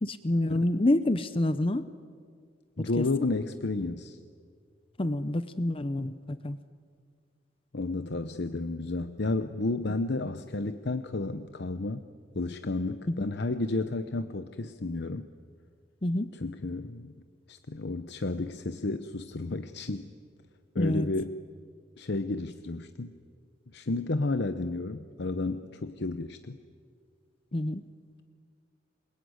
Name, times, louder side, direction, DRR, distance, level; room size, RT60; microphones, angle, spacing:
voice 1, 0.0-1.9 3.0-3.1 5.0-6.6 13.1-13.3 16.0-16.3 20.8-21.1 27.5-27.8, left 1 dB, 30° left, 12 dB, 0.7 m, -27 dB
voice 2, 2.8-4.2 7.7-12.0 12.3-15.3 16.3-17.1 17.5-20.1 20.7-21.4 22.0-23.1 23.7-26.6, left 2 dB, 60° left, 10 dB, 0.8 m, -32 dB
27.0 x 22.0 x 9.5 m, 2.1 s
head